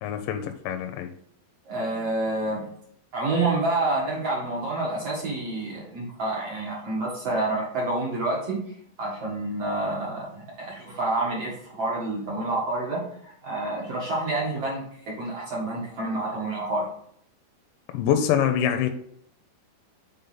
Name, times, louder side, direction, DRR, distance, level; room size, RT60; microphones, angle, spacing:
voice 1, 0.0-1.1 17.9-18.9, left 9 dB, 85° left, 6 dB, 2.7 m, -25 dB
voice 2, 1.6-2.7 3.1-8.6 9.0-16.9, right 2 dB, 60° right, -4 dB, 1.7 m, -28 dB
6.9 x 3.5 x 5.6 m, 0.65 s
omnidirectional pair, 5.2 m